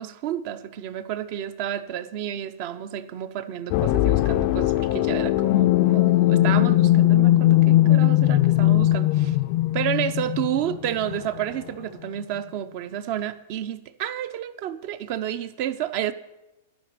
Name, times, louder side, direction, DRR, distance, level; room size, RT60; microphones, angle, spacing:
voice 1, 0.0-9.4 9.7-16.1, right 11 dB, 50° right, 13 dB, 0.6 m, -30 dB
sound 1, 3.7-11.4, left 15 dB, 50° left, 0.3 m, -19 dB
11.0 x 5.1 x 6.6 m, 1.0 s
hypercardioid pair, 115°, 0 cm